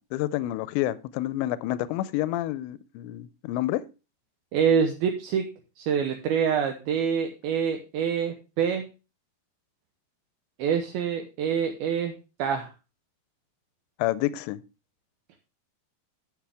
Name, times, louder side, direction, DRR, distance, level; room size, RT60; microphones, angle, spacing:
voice 1, 0.0-3.8 14.0-14.6, left 15 dB, 85° left, 2.8 m, -29 dB
voice 2, 4.5-5.4 5.8-8.9 10.6-12.1 12.4-12.7, right 7 dB, 75° right, 2.4 m, -26 dB
10.5 x 7.3 x 3.4 m
omnidirectional pair, 5.0 m